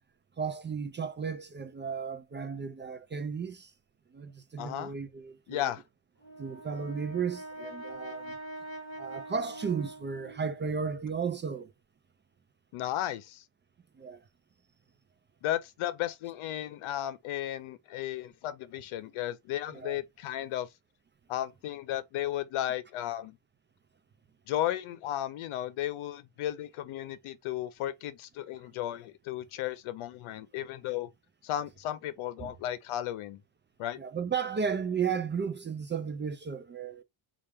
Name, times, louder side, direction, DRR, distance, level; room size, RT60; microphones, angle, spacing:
voice 1, 0.4-3.7 4.1-5.7 6.4-8.4 9.0-11.7 14.0-14.2 19.7-20.0 32.4-32.5 34.0-37.0, right 6 dB, 25° right, 0.4 m, -34 dB
voice 2, 4.6-4.9 5.5-5.8 12.7-13.4 15.4-20.7 21.3-23.4 24.5-31.1 31.4-33.4 33.8-34.0, left 12 dB, 80° left, 0.8 m, -34 dB
Brass instrument, 6.2-10.6, right 1 dB, 30° left, 2.2 m, -43 dB
4.3 x 2.5 x 3.4 m
cardioid pair, 120°, 49 cm